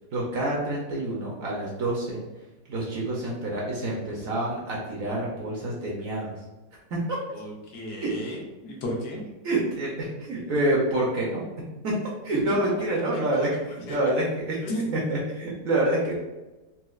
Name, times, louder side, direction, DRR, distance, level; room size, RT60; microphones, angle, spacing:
voice 1, 0.1-2.2 2.7-6.3 7.1-7.2 8.0-8.1 9.4-11.4 11.8-11.9 12.2-13.5 13.9-14.6 14.9-16.2, right 1 dB, 60° right, -4 dB, 0.9 m, -27 dB
voice 2, 7.4-8.4 8.6-9.2 12.5-12.6 13.1-13.2 14.6-14.8, left 1 dB, 70° left, -2 dB, 1.3 m, -33 dB
4.2 x 2.2 x 2.3 m, 1.1 s
omnidirectional pair, 1.9 m